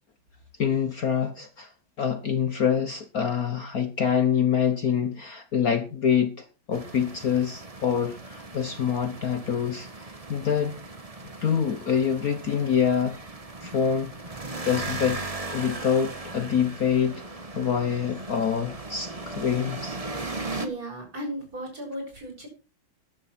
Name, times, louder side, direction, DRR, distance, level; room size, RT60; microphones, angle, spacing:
voice 1, 0.6-1.7 2.0-9.9 10.3-10.8 11.4-13.2 13.6-15.2 15.5-17.2 17.5-20.0, left 7 dB, 50° left, 1.4 m, -26 dB
sound 1, 6.7-20.7, right 2 dB, 20° right, 1.2 m, -38 dB
voice 2, 20.6-22.5, right 1 dB, 45° right, 7.3 m, -35 dB
14.5 x 11.0 x 4.4 m
omnidirectional pair, 2.2 m